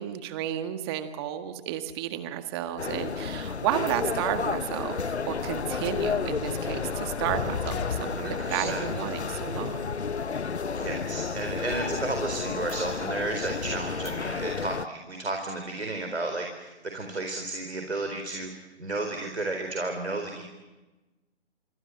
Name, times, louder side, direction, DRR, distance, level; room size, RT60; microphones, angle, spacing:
voice 1, 0.0-9.9, right 11 dB, 25° right, 9 dB, 1.7 m, -32 dB
sound 1, 2.8-14.9, left 5 dB, 80° left, 0.8 m, -32 dB
sound 2, 5.3-8.6, left 7 dB, 40° left, 2.9 m, -37 dB
voice 2, 7.9-8.9 10.7-18.5 18.8-20.4, right 2 dB, 75° right, 4 dB, 4.3 m, -33 dB
27.0 x 25.5 x 8.0 m, 1.1 s
figure-of-eight pair, 140°, 33 cm